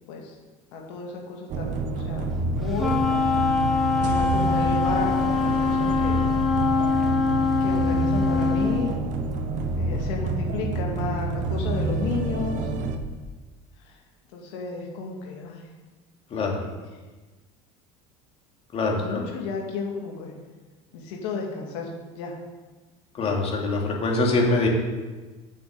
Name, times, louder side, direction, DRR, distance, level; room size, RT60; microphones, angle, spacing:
voice 1, 0.7-2.3 2.6-3.0 4.0-6.2 7.6-9.0 9.7-12.7 13.8-14.0 14.3-15.6 16.6-16.7 18.9-20.3 20.9-21.9 22.2-22.3, left 4 dB, 85° left, 0 dB, 2.2 m, -33 dB
sound 1, 1.5-13.0, right 3 dB, 55° right, 1.3 m, -28 dB
Wind instrument woodwind instrument, 2.7-8.9, left 5 dB, ahead, 1.9 m, -23 dB
voice 2, 18.7-19.2 23.1-24.7, left 2 dB, 40° left, -1 dB, 2.8 m, -24 dB
7.7 x 6.2 x 7.8 m, 1.3 s
supercardioid pair, 105°, 15 cm